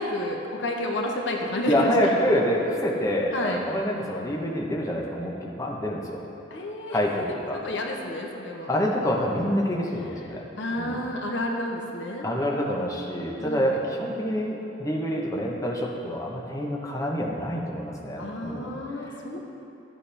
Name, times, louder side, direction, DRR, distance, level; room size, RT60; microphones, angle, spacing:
voice 1, 0.0-1.9 3.3-3.6 4.2-4.3 6.5-7.0 7.5-8.7 10.0-12.3 13.4-13.8 18.2-19.4, left 1 dB, 75° left, 1 dB, 1.0 m, -31 dB
voice 2, 1.7-6.2 6.9-7.6 8.7-10.5 10.8-11.0 12.2-18.7, equal, 20° left, -2 dB, 0.9 m, -27 dB
13.0 x 8.4 x 3.4 m, 2.9 s
head